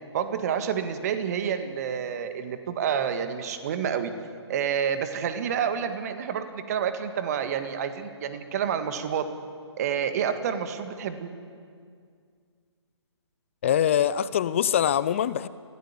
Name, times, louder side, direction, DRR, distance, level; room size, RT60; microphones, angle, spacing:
voice 1, 0.1-4.1 4.5-9.3 9.8-11.3, right 8 dB, 35° right, 9 dB, 1.7 m, -29 dB
voice 2, 13.6-15.5, left 10 dB, 25° left, 17 dB, 0.4 m, -23 dB
22.0 x 16.0 x 8.5 m, 2.2 s
figure-of-eight pair, 140°, 15 cm